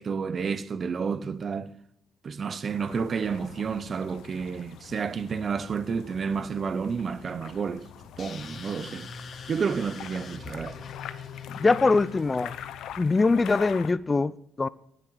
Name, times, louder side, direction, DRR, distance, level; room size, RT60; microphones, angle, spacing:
voice 1, 0.0-1.7 2.2-7.8 8.2-9.1 9.5-10.9, right 6 dB, 45° right, 0.7 m, -30 dB
sound 1, 2.7-13.9, left 10 dB, 80° left, 0.8 m, -44 dB
sound 2, 8.2-12.9, left 6 dB, 55° left, 1.6 m, -43 dB
voice 2, 11.5-12.5 13.0-14.7, left 3 dB, 25° left, 0.4 m, -23 dB
10.5 x 9.5 x 7.6 m
cardioid pair, 90°, 0 cm